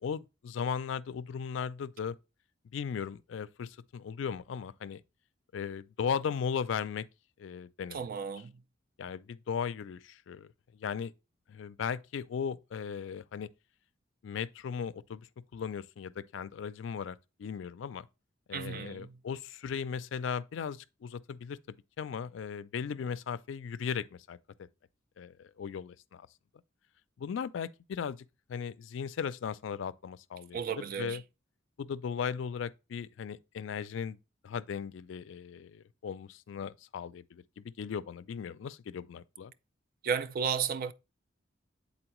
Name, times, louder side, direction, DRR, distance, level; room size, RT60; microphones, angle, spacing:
voice 1, 0.0-2.2 2.7-5.0 5.5-7.1 7.4-8.1 9.0-11.1 11.5-13.5 14.2-18.1 18.5-21.6 22.0-24.4 25.2-26.3 27.2-28.2 28.5-31.2 31.8-34.2 34.4-39.5, left 7 dB, 70° left, 0.3 m, -37 dB
voice 2, 7.9-8.5 18.5-19.1 30.5-31.2 40.0-40.9, right 7 dB, 45° right, 0.3 m, -33 dB
7.8 x 4.1 x 3.0 m
head